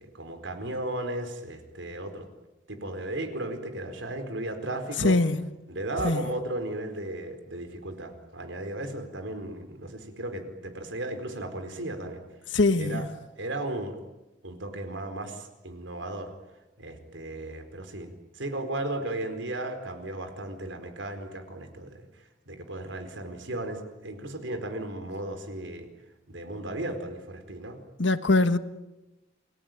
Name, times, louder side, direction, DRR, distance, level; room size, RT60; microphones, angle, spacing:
voice 1, 0.0-2.3 2.7-5.2 5.7-12.2 12.8-13.1 13.4-14.0 14.4-16.3 16.8-22.0 22.5-25.9 26.3-27.8, right 1 dB, 85° right, 4.5 m, -35 dB
voice 2, 5.0-5.4 6.0-6.2 12.5-13.1 28.0-28.6, left 2 dB, 85° left, 1.5 m, -22 dB
29.5 x 21.0 x 9.2 m
head